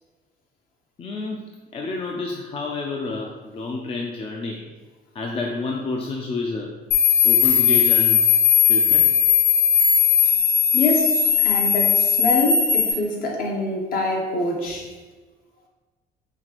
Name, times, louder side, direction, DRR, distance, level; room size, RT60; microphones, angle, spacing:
voice 1, 1.0-1.4 1.7-4.7 5.1-6.7 7.2-8.3 8.7-9.1, left 3 dB, 35° left, 1 dB, 0.4 m, -29 dB
sound 1, 6.9-12.9, left 8 dB, 90° left, 0.6 m, -18 dB
voice 2, 10.7-14.9, left 2 dB, 55° left, 0 dB, 1.0 m, -25 dB
5.7 x 2.4 x 3.0 m, 1.3 s
cardioid pair, 110°, 17 cm